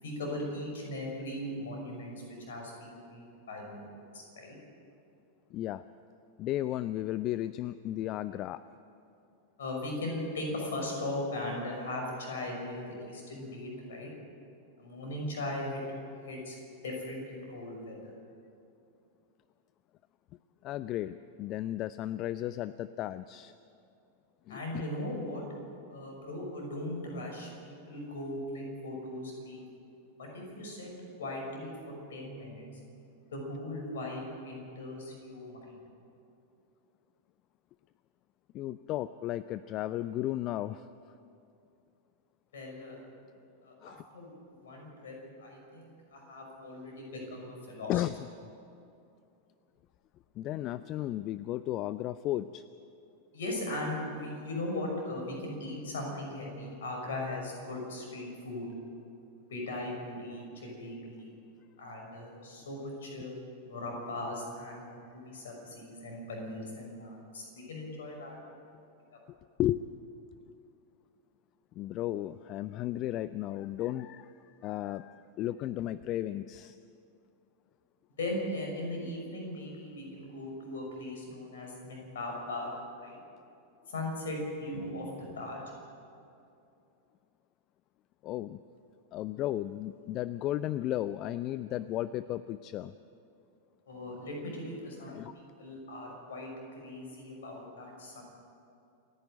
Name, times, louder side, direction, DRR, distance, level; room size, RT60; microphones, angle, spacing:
voice 1, 0.0-2.1 2.5-3.9 4.1-4.6 9.6-14.1 14.8-15.8 16.2-16.6 16.8-18.0 24.5-25.4 25.9-29.6 30.2-30.9 31.2-32.6 33.3-35.8 42.5-43.0 43.6-44.3 44.6-48.0 53.3-58.7 59.5-61.3 61.8-63.3 63.6-68.4 69.1-69.2 78.2-83.2 83.9-85.6 93.9-95.2 95.6-96.5 96.8-98.2, left 1 dB, 60° left, 1 dB, 6.1 m, -38 dB
voice 2, 5.5-5.8 6.4-8.6 20.6-23.5 24.5-24.8 38.5-40.9 43.8-44.0 47.9-48.3 50.4-52.6 69.6-69.8 71.8-76.8 88.2-88.6 89.1-93.0 95.1-95.3, left 13 dB, 35° left, 16 dB, 0.4 m, -34 dB
27.5 x 10.5 x 9.1 m, 2.6 s
figure-of-eight pair, 90°, 0 cm